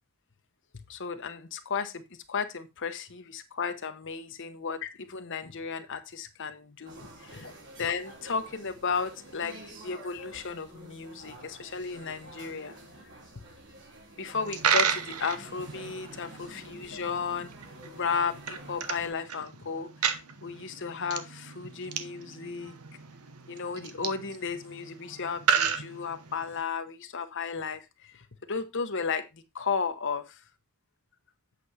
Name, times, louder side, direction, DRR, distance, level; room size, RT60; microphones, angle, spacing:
voice 1, 0.7-2.0 2.3-7.0 7.3-7.5 7.8-12.8 14.2-17.5 17.9-22.8 23.5-30.2, left 5 dB, 60° left, 8 dB, 1.0 m, -34 dB
sound 1, 6.8-19.1, right 1 dB, 55° right, 3.5 m, -49 dB
Coin (dropping), 14.3-26.6, right 7 dB, 80° right, 1.0 m, -33 dB
8.5 x 6.1 x 4.2 m, 0.24 s
head